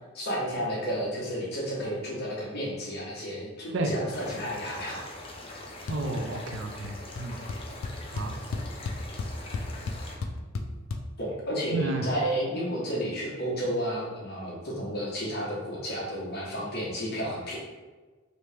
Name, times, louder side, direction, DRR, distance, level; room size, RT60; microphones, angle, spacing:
voice 1, 0.1-5.0 11.2-17.6, equal, 55° left, -5 dB, 1.1 m, -32 dB
sound 1, 4.1-10.2, left 2 dB, 30° left, 0.5 m, -43 dB
sound 2, 5.9-6.2 6.5-6.9 7.2-7.3 7.5-11.0, left 3 dB, 85° left, 0.4 m, -33 dB
voice 2, 5.9-7.4 8.1-8.4 11.7-12.1, right 2 dB, 65° right, 4 dB, 0.4 m, -31 dB
3.0 x 2.7 x 3.4 m, 1.3 s
head